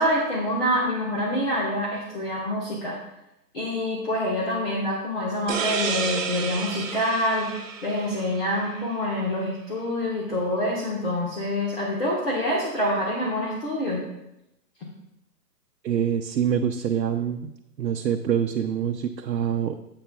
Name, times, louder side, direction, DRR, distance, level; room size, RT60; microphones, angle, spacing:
voice 1, 0.0-3.0 3.5-7.5 7.8-14.0, left 1 dB, 35° left, -4 dB, 1.4 m, -26 dB
sound 1, 5.5-8.9, right 5 dB, 50° right, 0.9 m, -31 dB
voice 2, 15.8-17.5 17.8-19.8, right 8 dB, 90° right, 3 dB, 0.7 m, -25 dB
10.0 x 8.0 x 2.3 m, 0.86 s
hypercardioid pair, 175°, 49 cm